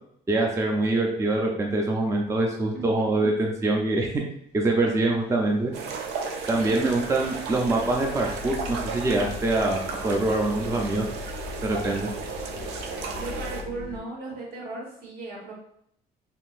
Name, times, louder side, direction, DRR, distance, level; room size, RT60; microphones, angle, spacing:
voice 1, 0.3-4.1 4.5-5.7 6.5-11.1 11.6-12.1, right 2 dB, 15° right, 0 dB, 0.4 m, -24 dB
voice 2, 2.7-3.3 6.6-7.0 13.2-15.5, right 3 dB, 65° right, -2 dB, 1.3 m, -36 dB
sound 1, 5.1-5.2 5.4-14.0, left 5 dB, 80° left, 0.5 m, -40 dB
sound 2, 5.7-13.6, right 5 dB, 85° right, 0.5 m, -34 dB
3.6 x 2.6 x 2.4 m, 0.70 s
cardioid pair, 110°, 17 cm